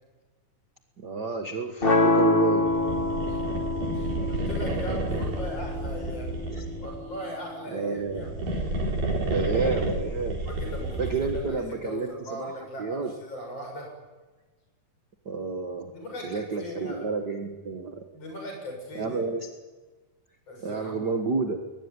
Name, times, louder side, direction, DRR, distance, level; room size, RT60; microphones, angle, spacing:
voice 1, 1.0-2.7 6.5-6.6 7.7-8.2 9.3-10.5 11.0-12.5 12.8-13.1 15.2-15.9 16.2-18.0 19.0-19.5 20.6-21.6, right 4 dB, 45° right, 4 dB, 1.6 m, -30 dB
sound 1, 1.8-7.8, left 2 dB, 25° left, 1.2 m, -27 dB
sound 2, 2.6-7.1 8.0-11.6, right 2 dB, 90° right, 5.6 m, -31 dB
voice 2, 3.9-6.3 6.8-8.3 10.4-13.9 15.9-17.1 18.1-19.3 20.5-21.1, equal, 50° left, 2 dB, 8.4 m, -39 dB
21.5 x 20.0 x 9.9 m, 1.3 s
omnidirectional pair, 3.7 m